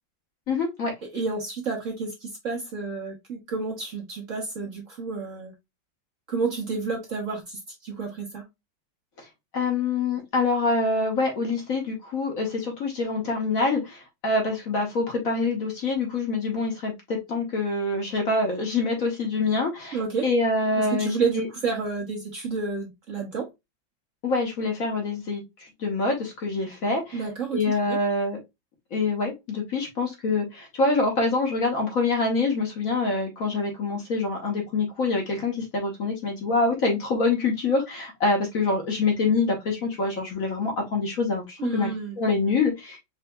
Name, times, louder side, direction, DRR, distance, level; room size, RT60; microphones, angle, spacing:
voice 1, 0.5-0.9 9.5-21.5 24.2-27.2 27.5-28.4 28.9-41.9 42.2-43.0, left 3 dB, 50° left, 1 dB, 1.6 m, -25 dB
voice 2, 1.1-5.5 6.3-8.4 19.9-20.3 20.8-23.5 27.1-28.0 41.6-42.2, right 4 dB, 50° right, 0 dB, 1.2 m, -30 dB
4.7 x 3.2 x 2.2 m, 0.20 s
omnidirectional pair, 2.1 m